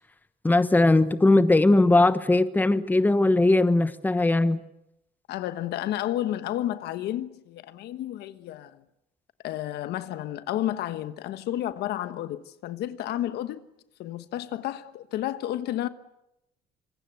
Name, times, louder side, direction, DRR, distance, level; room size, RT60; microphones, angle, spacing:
voice 1, 0.4-4.6, left 2 dB, 10° left, 1.2 m, -20 dB
voice 2, 5.3-8.8 9.4-13.6 14.0-15.9, left 13 dB, 75° left, 1.3 m, -31 dB
26.0 x 22.5 x 8.0 m
cardioid pair, 110°, 17 cm